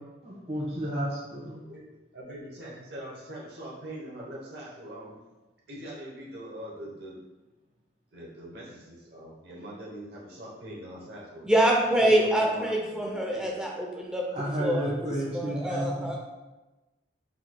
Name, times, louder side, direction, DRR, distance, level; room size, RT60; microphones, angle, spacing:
voice 1, 0.2-1.6 14.3-16.2, equal, 40° right, -5 dB, 1.3 m, -32 dB
voice 2, 2.1-5.2 5.7-7.2 8.1-11.4 12.0-13.6, right 1 dB, 65° right, -5 dB, 0.9 m, -42 dB
voice 3, 11.4-14.2 14.6-16.2, right 1 dB, 5° right, -1 dB, 0.6 m, -25 dB
4.7 x 3.9 x 2.2 m, 1.1 s
head